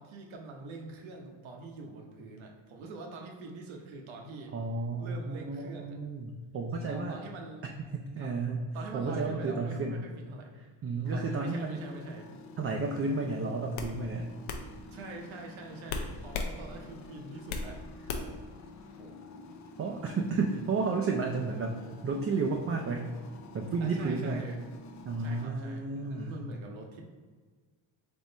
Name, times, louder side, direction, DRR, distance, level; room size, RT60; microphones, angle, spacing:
voice 1, 0.0-4.5 5.0-6.0 6.9-7.7 8.2-8.3 8.7-10.6 11.1-12.3 14.9-17.8 18.1-18.3 18.9-19.2 23.8-24.6 25.2-27.0, right 3 dB, 70° right, 1 dB, 1.0 m, -44 dB
voice 2, 4.5-7.2 7.9-8.6 8.9-10.0 10.8-11.8 12.6-14.3 19.8-23.1 23.5-24.4 25.0-26.5, right 3 dB, 30° right, 1 dB, 0.4 m, -32 dB
sound 1, 11.0-25.5, left 2 dB, 40° left, 0.4 m, -49 dB
sound 2, 13.0-13.2 13.8-13.9 14.5-14.6 15.9-16.5 16.9-17.7 18.1-18.4, left 4 dB, 90° left, 0.6 m, -35 dB
3.7 x 3.0 x 4.0 m, 1.5 s
cardioid pair, 80°, 49 cm